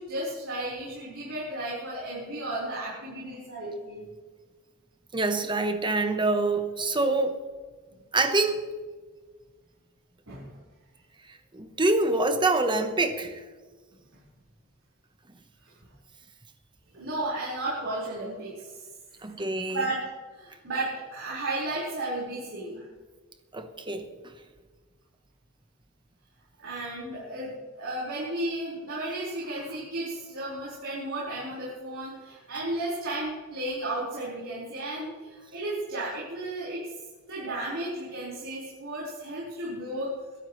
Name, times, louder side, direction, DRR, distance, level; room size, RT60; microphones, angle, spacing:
voice 1, 0.0-4.0 10.3-10.5 16.9-18.8 19.7-20.1 20.3-22.8 26.6-36.8 37.3-40.1, right 1 dB, 60° right, -8 dB, 4.9 m, -33 dB
voice 2, 5.1-7.4 8.1-8.7 11.3-13.4 19.2-19.8 23.5-24.1, right 2 dB, 20° right, 7 dB, 1.2 m, -26 dB
22.5 x 12.5 x 3.2 m, 1.4 s
head